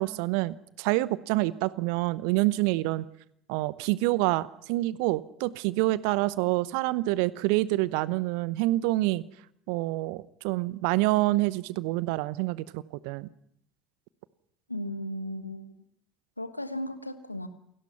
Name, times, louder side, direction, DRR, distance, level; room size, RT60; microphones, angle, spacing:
voice 1, 0.0-3.1 3.5-9.2 9.7-13.3, right 19 dB, 60° right, 19 dB, 0.8 m, -27 dB
voice 2, 14.7-15.7 16.4-17.5, left 1 dB, 90° left, 11 dB, 1.2 m, -35 dB
28.5 x 18.0 x 5.8 m, 0.73 s
figure-of-eight pair, 60°, 0 cm